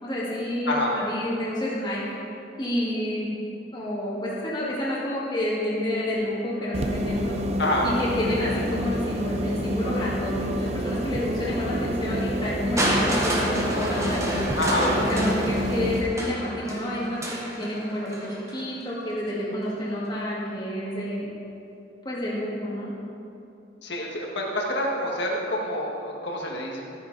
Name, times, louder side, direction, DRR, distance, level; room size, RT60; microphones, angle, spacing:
voice 1, 0.0-2.0 2.6-3.3 3.7-7.4 7.8-14.5 15.0-17.2 17.6-21.3 22.0-22.9, left 1 dB, 25° left, -7 dB, 2.1 m, -29 dB
sound 1, 6.7-16.0, equal, 35° right, 0.7 m, -28 dB
Crushing, 12.8-18.7 19.6-19.7, right 1 dB, 15° right, 1.4 m, -29 dB
voice 2, 14.6-14.9 23.8-26.8, left 1 dB, 60° left, -2 dB, 1.9 m, -27 dB
13.5 x 9.3 x 4.1 m, 2.6 s
head